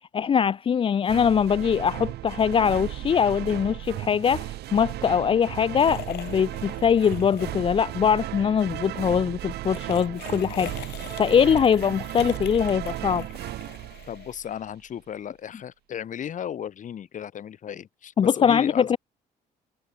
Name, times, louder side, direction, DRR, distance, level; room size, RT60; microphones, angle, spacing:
voice 1, 0.1-10.9 11.2-13.3 18.2-19.0, left 7 dB, 30° left, 0.5 m, -22 dB
sound 1, 1.1-14.7, right 15 dB, 75° right, 6.9 m, -35 dB
sound 2, 5.7-8.0 8.2-8.4 9.5-14.5, left 15 dB, 75° left, 4.5 m, -43 dB
voice 2, 14.1-19.0, left 9 dB, 50° left, 2.5 m, -35 dB
cardioid pair, 110°, 17 cm